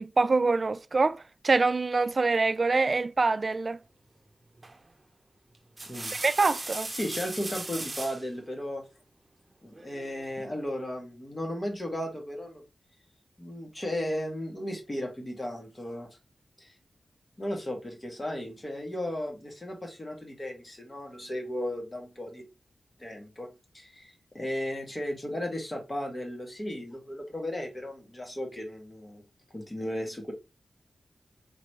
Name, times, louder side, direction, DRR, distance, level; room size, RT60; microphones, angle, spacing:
voice 1, 0.0-3.8 6.1-6.9, right 3 dB, 50° right, 0.3 m, -25 dB
sound 1, 4.6-4.9 5.5-8.3 9.7-10.4, right 2 dB, 35° right, 0.8 m, -38 dB
voice 2, 6.5-8.8 9.6-12.6 13.4-16.1 16.6-16.7 17.4-22.4 23.0-23.5 23.7-29.2 29.5-30.3, left 1 dB, 30° left, 1.7 m, -35 dB
4.0 x 3.0 x 3.0 m
cardioid pair, 50°, 0 cm